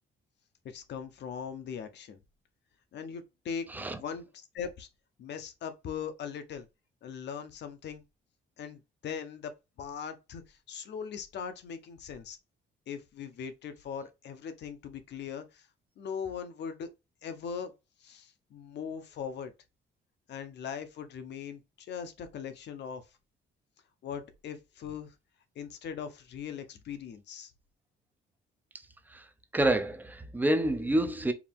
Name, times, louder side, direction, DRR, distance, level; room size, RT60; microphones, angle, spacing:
voice 1, 0.6-2.2 2.9-4.9 5.2-6.7 7.0-8.0 8.6-9.5 9.8-12.4 12.9-15.7 16.0-16.9 17.2-17.7 18.0-19.5 20.3-23.0 24.0-25.1 25.5-27.5, left 7 dB, 55° left, 0.8 m, -40 dB
voice 2, 29.5-31.3, right 1 dB, 10° right, 0.5 m, -28 dB
4.8 x 2.7 x 3.5 m
cardioid pair, 175°, 21 cm